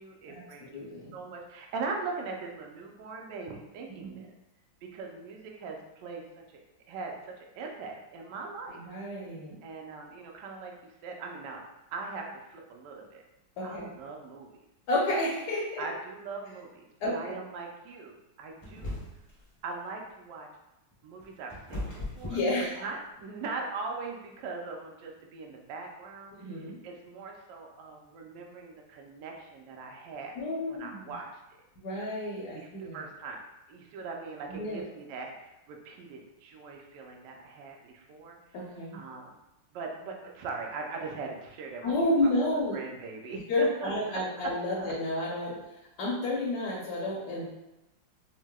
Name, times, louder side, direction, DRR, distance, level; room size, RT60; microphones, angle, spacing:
voice 1, 0.0-0.9 1.1-4.3 4.9-6.2 6.9-8.8 9.6-10.7 11.0-11.6 11.9-13.2 13.6-14.5 15.8-19.0 19.6-20.5 21.0-22.4 22.7-30.4 30.7-31.3 32.5-33.4 33.7-38.4 38.9-39.4 39.7-41.9 42.2-44.9, right 4 dB, 75° right, 1 dB, 1.1 m, -40 dB
voice 2, 0.7-1.2 4.0-4.2 8.7-9.6 13.6-13.9 14.9-15.9 17.0-17.3 22.3-22.7 26.4-26.8 30.3-31.1 31.8-33.0 34.5-34.8 38.5-39.0 41.8-42.8 43.5-45.6 46.0-47.4, left 1 dB, 65° left, -5 dB, 1.2 m, -30 dB
sound 1, 18.6-19.4 20.9-23.2, left 1 dB, 35° left, 0.5 m, -38 dB
4.5 x 2.0 x 2.2 m, 0.92 s
omnidirectional pair, 2.1 m